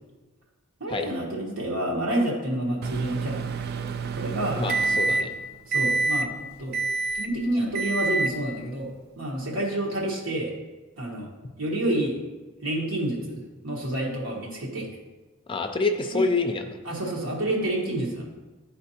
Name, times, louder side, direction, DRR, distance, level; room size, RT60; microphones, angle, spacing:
voice 1, 0.8-4.6 5.7-6.8 7.1-8.9 9.2-10.5 11.0-11.3 11.6-12.2 12.6-14.9 16.1-16.2 16.8-18.3, right 1 dB, 85° right, -3 dB, 1.2 m, -29 dB
Microwave oven, 2.8-5.4 5.7-6.3 6.7-7.3 7.7-8.4, right 3 dB, 50° right, 0.3 m, -27 dB
voice 2, 4.6-5.3 15.5-16.7, left 3 dB, 25° left, 5 dB, 0.4 m, -26 dB
10.5 x 4.2 x 2.8 m, 1.2 s
head